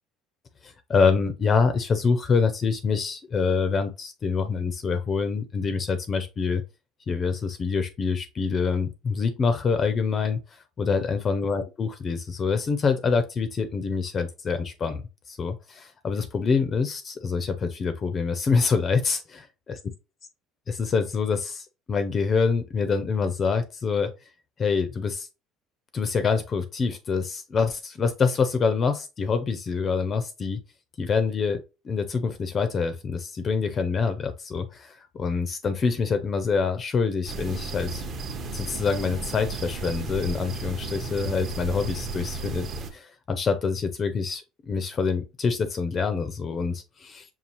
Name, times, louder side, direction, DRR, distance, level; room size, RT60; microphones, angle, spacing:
voice 1, 0.6-6.6 7.1-10.4 10.8-15.0 15.3-19.4 20.7-24.1 24.6-25.3 25.9-30.6 31.0-38.0 38.5-42.7 42.9-47.2, left 5 dB, 25° left, 0.5 m, -26 dB
sound 1, 37.3-42.9, right 3 dB, 35° right, 0.7 m, -34 dB
5.4 x 2.3 x 2.9 m
cardioid pair, 145°, 0 cm